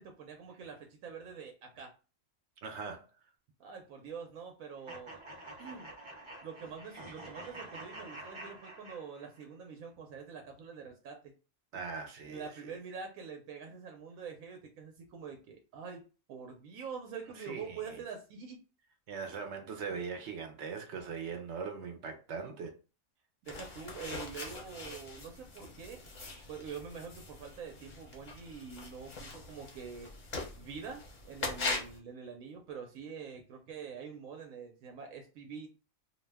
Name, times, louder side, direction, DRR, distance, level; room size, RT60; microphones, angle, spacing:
voice 1, 0.0-1.9 3.6-5.1 5.6-5.9 6.4-11.3 12.2-16.0 16.3-18.6 23.4-26.1 26.5-30.1 30.5-35.7, right 6 dB, 90° right, 1.0 m, -45 dB
voice 2, 2.6-3.1 11.7-12.7 17.3-17.8 19.1-22.7, right 5 dB, 65° right, 0.8 m, -40 dB
sound 1, 4.9-9.5, right 2 dB, 35° right, 0.5 m, -48 dB
sound 2, 23.5-32.0, left 3 dB, 40° left, 0.7 m, -42 dB
2.5 x 2.1 x 3.3 m
omnidirectional pair, 1.4 m